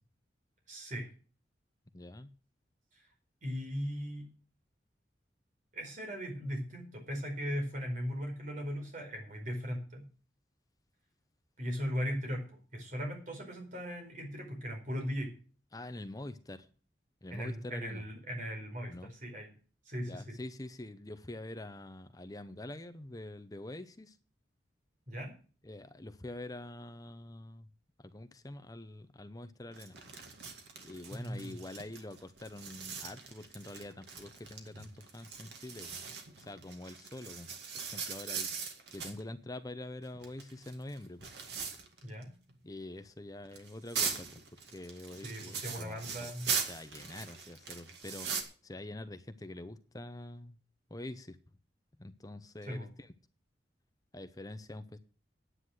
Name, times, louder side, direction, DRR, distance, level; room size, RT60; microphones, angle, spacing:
voice 1, 0.7-1.1 3.4-4.3 5.7-10.0 11.6-15.3 17.3-19.5 19.8-20.3 25.1-25.3 31.1-31.6 42.0-42.3 45.2-46.5 52.6-52.9, equal, 45° right, 2 dB, 4.7 m, -38 dB
voice 2, 1.9-2.3 15.7-16.7 17.2-18.0 18.9-19.1 20.1-24.2 25.6-27.7 28.0-29.9 30.8-36.0 36.4-37.5 37.9-38.5 38.9-41.3 42.6-48.3 48.6-50.6 50.9-51.4 52.0-53.1 54.1-55.0, left 1 dB, 20° left, 10 dB, 0.7 m, -45 dB
sound 1, 29.7-39.2 40.0-42.2 42.5-42.6 43.5-48.4, right 6 dB, 65° right, 2.2 m, -40 dB
9.9 x 9.8 x 6.3 m, 0.38 s
head